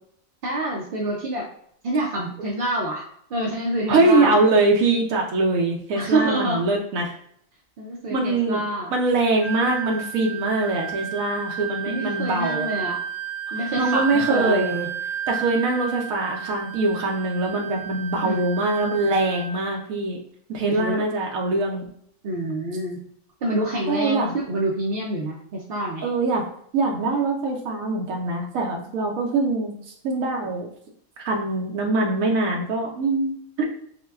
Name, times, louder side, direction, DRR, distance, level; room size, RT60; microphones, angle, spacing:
voice 1, 0.4-1.5 1.8-3.0 3.3-4.4 5.9-6.6 7.8-8.9 11.9-13.0 13.5-14.9 18.2-18.4 20.6-21.0 22.2-23.0 23.4-26.1, right 1 dB, 60° right, -2 dB, 0.7 m, -27 dB
voice 2, 3.9-7.1 8.1-8.6 8.9-12.7 13.5-14.7 15.3-20.2 20.5-21.8 23.9-24.3 26.0-26.4 26.7-29.8 30.0-30.7 31.2-33.7, right 2 dB, 80° right, 0 dB, 1.1 m, -23 dB
Wind instrument woodwind instrument, 9.4-19.8, right 8 dB, 70° left, 1.1 m, -32 dB
5.2 x 2.2 x 2.3 m, 0.65 s
omnidirectional pair, 1.4 m